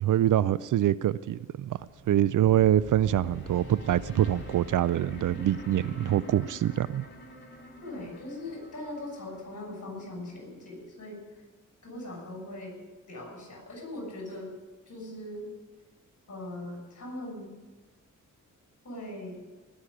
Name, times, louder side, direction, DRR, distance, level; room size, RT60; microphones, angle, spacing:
voice 1, 0.0-1.8 2.1-7.0, right 12 dB, 70° right, 18 dB, 0.5 m, -25 dB
sound 1, 1.8-10.8, left 1 dB, 35° left, 2.8 m, -46 dB
voice 2, 7.8-11.2 11.8-12.8 13.1-14.5 14.9-15.5 16.3-17.5 18.8-19.4, left 1 dB, 50° left, 0 dB, 6.9 m, -40 dB
19.5 x 6.5 x 9.9 m, 1.2 s
cardioid pair, 100°, 32 cm